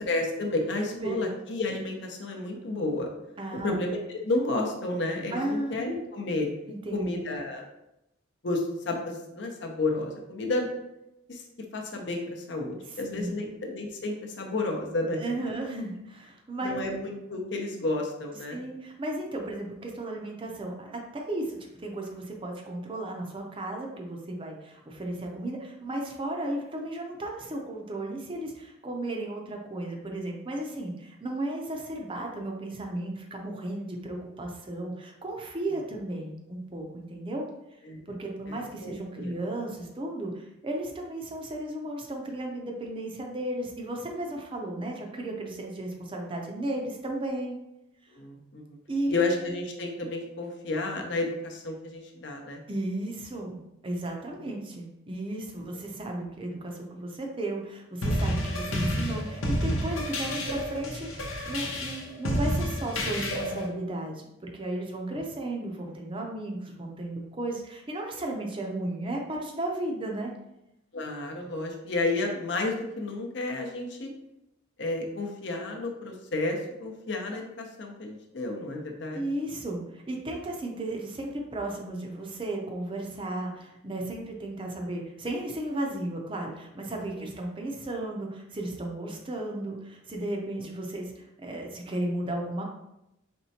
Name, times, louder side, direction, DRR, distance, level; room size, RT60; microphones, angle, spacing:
voice 1, 0.1-3.1 3.6-6.5 6.9-7.6 8.4-10.7 11.3-11.4 11.7-15.2 16.6-18.6 35.7-35.8 37.9-38.0 38.5-39.3 48.1-48.8 49.1-52.6 54.4-54.5 70.9-74.1 74.8-79.2 87.2-87.3, left 2 dB, 60° left, 2 dB, 0.7 m, -31 dB
voice 2, 0.9-1.3 3.4-3.8 5.3-6.1 6.7-7.0 12.9-13.4 15.2-16.8 18.5-37.5 38.1-47.6 48.9-49.1 52.7-70.3 79.1-92.6, right 1 dB, 25° right, 1 dB, 0.5 m, -34 dB
sound 1, 58.0-63.7, equal, 90° left, 0.8 m, -30 dB
4.3 x 3.2 x 2.8 m, 0.87 s
head